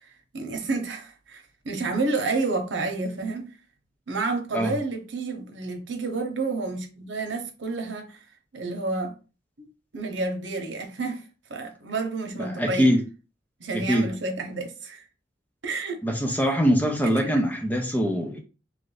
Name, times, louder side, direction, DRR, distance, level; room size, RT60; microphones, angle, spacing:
voice 1, 0.3-3.5 4.1-8.2 8.5-9.1 9.6-9.7 9.9-11.2 11.5-12.9 13.6-15.0 15.6-16.0 17.0-17.4, right 3 dB, 80° right, 0.9 m, -30 dB
voice 2, 12.3-13.0 13.7-14.1 16.0-18.4, equal, 10° left, 0.5 m, -23 dB
3.1 x 2.6 x 3.9 m
head